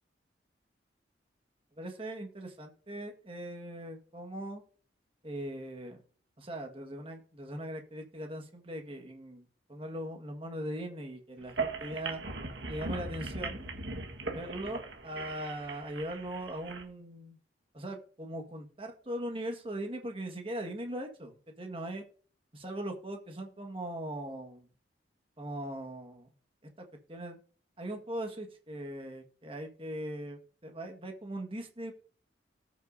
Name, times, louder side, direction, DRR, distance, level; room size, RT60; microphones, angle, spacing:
voice 1, 1.8-4.6 5.2-6.0 6.4-9.4 9.7-12.2 12.7-13.6 14.3-17.4 17.7-22.0 22.5-24.7 25.4-26.3 26.8-27.4 27.8-31.9, right 1 dB, 30° right, 4 dB, 1.6 m, -40 dB
sound 1, 11.4-16.8, right 3 dB, 75° right, 1.5 m, -39 dB
19.0 x 6.4 x 2.7 m, 0.41 s
head